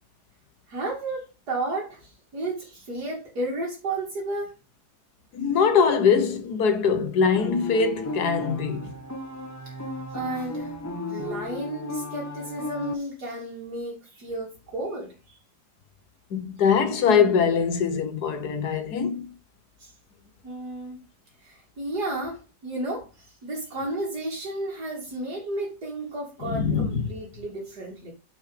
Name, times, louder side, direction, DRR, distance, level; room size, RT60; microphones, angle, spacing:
voice 1, 0.7-4.5 10.1-15.4 19.8-20.0 20.4-21.0 21.4-28.1, right 2 dB, 75° right, 3.1 m, -33 dB
voice 2, 5.3-8.9 16.3-19.3 26.4-27.1, left 6 dB, 75° left, 1.7 m, -22 dB
sound 1, 7.4-12.9, left 1 dB, 15° left, 0.8 m, -35 dB
6.3 x 6.2 x 5.1 m
omnidirectional pair, 1.7 m